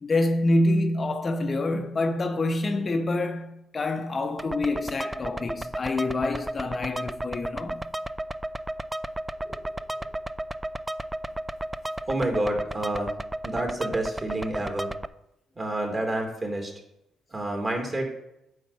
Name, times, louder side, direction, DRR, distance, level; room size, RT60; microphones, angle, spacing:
voice 1, 0.0-7.9, left 2 dB, 35° left, 0.7 m, -26 dB
sound 1, 4.4-15.1, right 1 dB, 15° right, 0.3 m, -34 dB
voice 2, 12.1-13.1 13.4-14.9 15.6-16.7 17.3-18.1, right 1 dB, 30° right, 2.3 m, -29 dB
9.0 x 3.9 x 6.9 m
cardioid pair, 90°, 0 cm